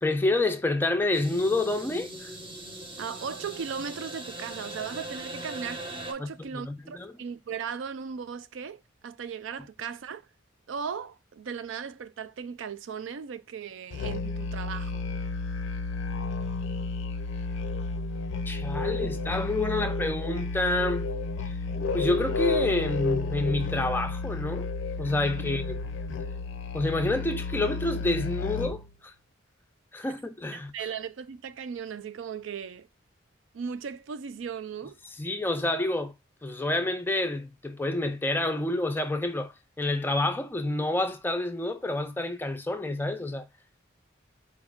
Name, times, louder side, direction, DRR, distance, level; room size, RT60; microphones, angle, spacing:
voice 1, 0.0-2.3 6.2-7.1 18.5-21.1 21.5-21.6 21.9-24.7 25.0-25.8 26.7-29.1 29.9-30.7 35.2-36.1 36.4-39.5 39.8-43.5, left 2 dB, 10° left, 0.3 m, -28 dB
sound 1, 1.1-6.1, right 1 dB, 25° right, 0.7 m, -40 dB
voice 2, 3.0-10.2 10.7-15.1 30.5-32.9 33.5-35.0, right 6 dB, 75° right, 0.4 m, -37 dB
Musical instrument, 13.9-28.9, left 3 dB, 70° left, 0.4 m, -31 dB
4.5 x 2.4 x 3.5 m
head